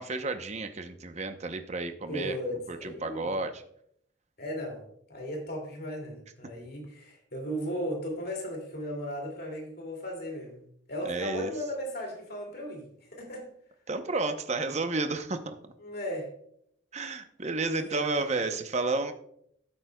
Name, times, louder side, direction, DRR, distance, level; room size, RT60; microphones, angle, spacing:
voice 1, 0.0-2.4 2.7-3.6 11.0-11.5 13.9-15.7 16.9-19.1, right 3 dB, 35° right, 8 dB, 0.7 m, -31 dB
voice 2, 2.1-3.3 4.4-4.8 5.1-10.6 10.9-13.5 15.8-16.3 17.0-17.2 17.7-18.3, equal, 55° left, 1 dB, 2.5 m, -36 dB
15.0 x 8.0 x 2.3 m, 0.69 s
head